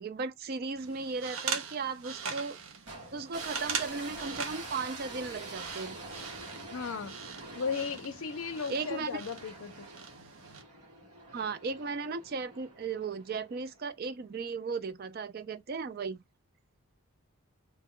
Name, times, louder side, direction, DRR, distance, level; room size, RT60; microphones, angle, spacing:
voice 1, 0.0-2.6 3.1-6.0 8.7-9.2 11.3-16.2, right 4 dB, 40° right, 0.3 m, -36 dB
sound 1, 0.8-10.6, right 6 dB, 70° right, 0.7 m, -41 dB
sound 2, 2.9-14.1, right 2 dB, 90° right, 1.6 m, -46 dB
voice 2, 6.7-7.1 7.6-9.9, left 5 dB, 65° left, 0.5 m, -36 dB
2.9 x 2.2 x 3.6 m
head